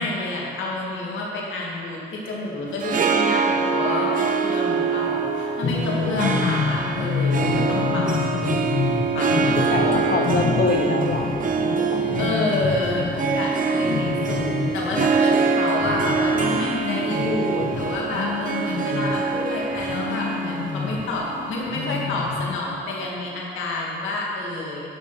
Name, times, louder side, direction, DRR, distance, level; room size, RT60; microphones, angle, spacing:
voice 1, 0.0-8.7 9.1-9.9 12.2-24.8, left 2 dB, 80° left, -3 dB, 2.1 m, -29 dB
Harp, 2.7-22.0, right 5 dB, 45° right, 0.8 m, -25 dB
sound 1, 5.6-19.3 19.7-22.6, left 5 dB, 35° left, 0.5 m, -28 dB
voice 2, 9.5-12.0, left 4 dB, 55° left, 2 dB, 1.4 m, -25 dB
11.5 x 6.0 x 4.9 m, 2.9 s
cardioid pair, 90°, 20 cm